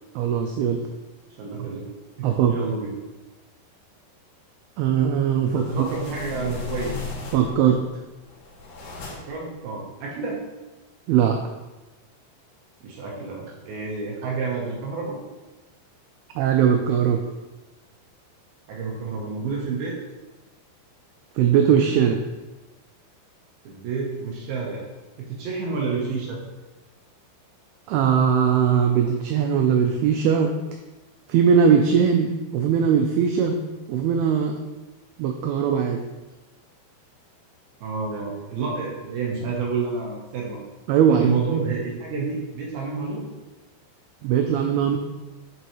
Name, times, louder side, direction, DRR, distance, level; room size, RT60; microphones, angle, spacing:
voice 1, 0.2-0.8 1.6-1.7 2.2-2.5 4.8-5.9 7.3-7.8 11.1-11.4 16.4-17.2 21.4-22.2 27.9-30.5 31.3-33.6 33.9-34.5 35.2-36.0 40.9-41.6 44.2-45.0, right 7 dB, 90° right, 4 dB, 2.2 m, -20 dB
voice 2, 1.4-1.9 2.2-2.9 5.5-7.0 9.3-10.4 12.8-15.2 18.7-20.0 23.6-24.8 25.2-26.4 37.8-40.6 41.1-43.3, right 4 dB, 70° right, -3 dB, 2.5 m, -29 dB
sound 1, 5.3-7.7 8.2-9.5, left 4 dB, 85° left, 4.4 m, -36 dB
9.8 x 4.6 x 3.0 m, 1.1 s
omnidirectional pair, 5.0 m